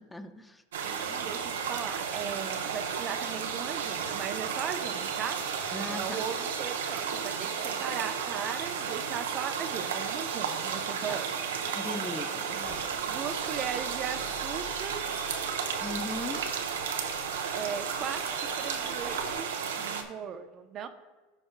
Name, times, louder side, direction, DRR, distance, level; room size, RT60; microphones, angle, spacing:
voice 1, 0.1-0.6 5.7-6.2 11.1-11.2 11.7-12.4 15.8-16.4, left 2 dB, 10° left, 7 dB, 0.7 m, -38 dB
sound 1, 0.7-20.0, right 6 dB, 90° right, 0.8 m, -33 dB
voice 2, 0.8-5.4 5.7-11.3 12.5-12.7 13.1-15.1 17.5-19.5 19.8-20.9, right 8 dB, 40° right, 8 dB, 0.7 m, -38 dB
sound 2, 12.5-19.4, left 1 dB, 40° left, 2.2 m, -49 dB
15.5 x 5.3 x 2.2 m, 1.2 s
hypercardioid pair, 105°, 0 cm